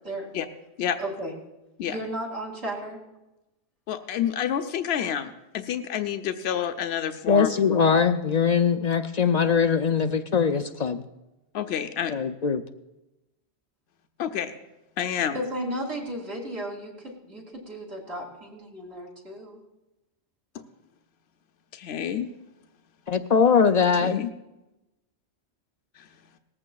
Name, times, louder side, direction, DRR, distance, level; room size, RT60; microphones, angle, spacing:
voice 1, 1.0-1.3 1.9-3.0 15.3-19.6, right 1 dB, 75° right, -2 dB, 3.0 m, -34 dB
voice 2, 3.9-7.5 10.0-10.1 11.5-12.1 14.2-14.5 15.0-15.4 21.7-22.3 24.0-24.3 26.0-26.1, left 9 dB, 75° left, 7 dB, 0.9 m, -28 dB
voice 3, 7.3-11.0 12.1-12.6 23.1-24.2, left 6 dB, 55° left, 9 dB, 0.5 m, -21 dB
19.0 x 14.5 x 2.3 m, 0.98 s
omnidirectional pair, 1.1 m